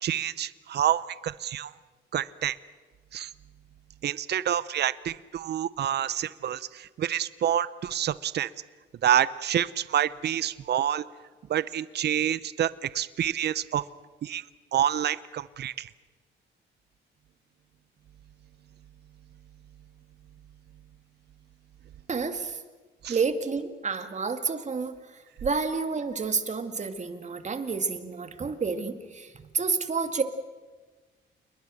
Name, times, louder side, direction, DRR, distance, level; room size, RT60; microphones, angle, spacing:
voice 1, 0.0-1.7 2.1-2.6 3.1-3.3 4.0-8.5 9.0-11.0 11.5-13.9 14.2-14.4 14.7-15.9 23.0-23.2, right 10 dB, 55° right, 17 dB, 0.8 m, -28 dB
voice 2, 22.1-22.6 23.1-30.2, right 5 dB, 35° right, 7 dB, 2.2 m, -30 dB
29.0 x 21.0 x 6.5 m, 1.4 s
cardioid pair, 90°, 20 cm